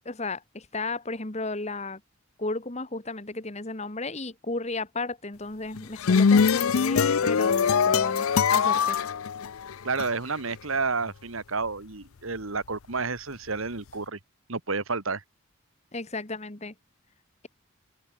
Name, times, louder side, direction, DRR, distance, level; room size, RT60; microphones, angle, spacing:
voice 1, 0.0-2.0 2.4-9.0 15.9-16.7, left 2 dB, 30° left, 1.6 m, -34 dB
sound 1, 5.7-10.1, left 6 dB, 85° left, 0.5 m, -22 dB
voice 2, 9.8-14.2 14.5-15.2, right 4 dB, 75° right, 1.9 m, -30 dB
open air
head